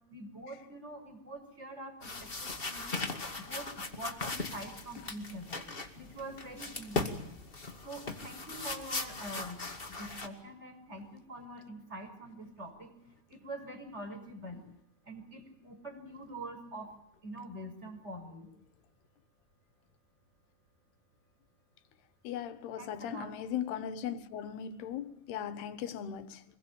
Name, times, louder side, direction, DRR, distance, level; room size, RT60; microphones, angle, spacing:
voice 1, 0.1-3.1 3.4-5.6 5.9-7.4 7.8-12.9 13.3-14.6 15.0-18.5 22.8-23.3, right 1 dB, 15° right, 6.2 m, -45 dB
sound 1, 2.0-10.3, left 3 dB, 20° left, 1.6 m, -39 dB
voice 2, 22.3-26.4, left 9 dB, 85° left, 3.4 m, -38 dB
26.5 x 22.0 x 8.9 m
omnidirectional pair, 4.5 m